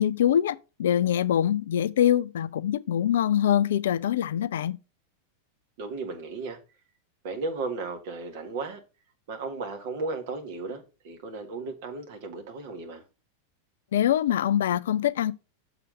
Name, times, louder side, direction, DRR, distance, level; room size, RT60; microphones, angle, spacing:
voice 1, 0.0-4.8 13.9-15.3, left 10 dB, 60° left, 0.3 m, -24 dB
voice 2, 5.8-6.6 7.2-8.8 9.3-13.0, right 3 dB, 50° right, 1.6 m, -35 dB
6.8 x 4.1 x 5.1 m
figure-of-eight pair, 90°, 0 cm